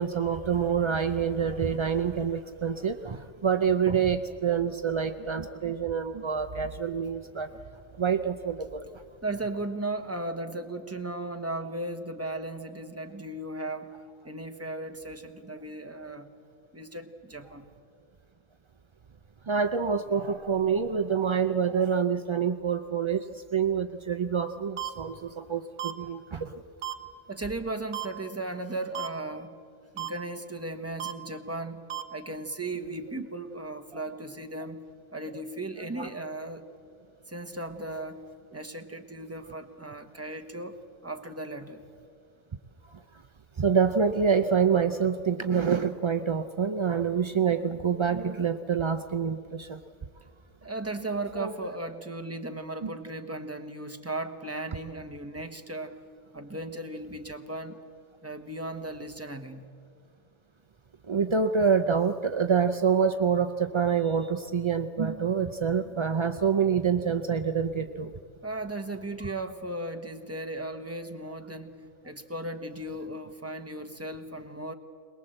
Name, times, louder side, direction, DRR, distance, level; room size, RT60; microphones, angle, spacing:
voice 1, 0.0-7.5 8.0-8.9 19.5-26.6 36.0-36.1 42.9-43.2 43.6-49.8 51.4-51.5 52.8-52.9 61.1-68.1 69.2-69.3, right 6 dB, 40° right, 9 dB, 0.4 m, -27 dB
voice 2, 9.2-13.9 14.2-16.3 16.7-17.7 27.3-29.6 29.9-34.8 35.1-36.7 37.3-38.2 38.5-40.8 41.0-41.8 50.6-56.0 56.3-57.8 58.2-59.7 68.4-74.7, right 2 dB, 10° right, 6 dB, 1.1 m, -36 dB
sound 1, 24.8-24.9 25.8-25.9 26.8-26.9 27.9-28.1 28.9-29.1 30.0-30.1 31.0-31.1 31.9-32.0, right 13 dB, 70° right, 1.3 m, -33 dB
22.0 x 21.0 x 7.8 m, 2.3 s
omnidirectional pair, 1.3 m